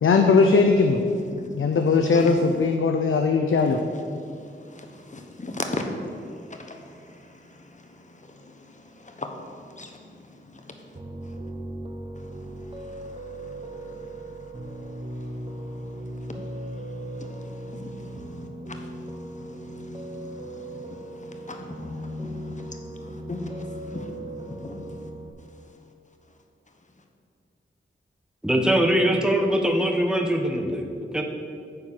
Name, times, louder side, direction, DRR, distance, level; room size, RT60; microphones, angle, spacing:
voice 1, 0.0-1.0 1.5-3.8, left 4 dB, 80° left, 4 dB, 0.6 m, -19 dB
voice 2, 1.2-1.6 2.1-2.4 4.2-11.0 11.2-11.4 12.1-24.1 24.6-24.8, left 2 dB, 35° left, 4 dB, 1.1 m, -40 dB
Piano, 10.9-25.3, right 1 dB, 25° right, 1.0 m, -37 dB
voice 3, 28.4-31.2, equal, 5° right, 2 dB, 1.0 m, -22 dB
9.5 x 4.5 x 7.4 m, 2.4 s
wide cardioid pair, 70°, 20 cm